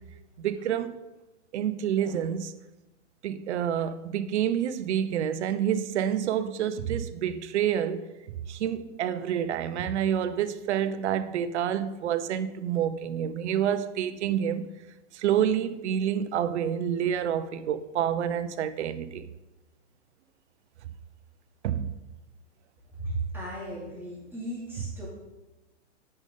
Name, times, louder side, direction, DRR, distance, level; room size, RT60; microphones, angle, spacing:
voice 1, 0.4-1.0 1.5-2.5 3.2-8.1 8.5-14.7 15.1-19.3 21.6-21.9, right 9 dB, 70° right, 0.7 m, -28 dB
voice 2, 23.0-25.1, right 2 dB, 5° right, 2.6 m, -35 dB
8.9 x 5.3 x 3.8 m
hypercardioid pair, 130°, 36 cm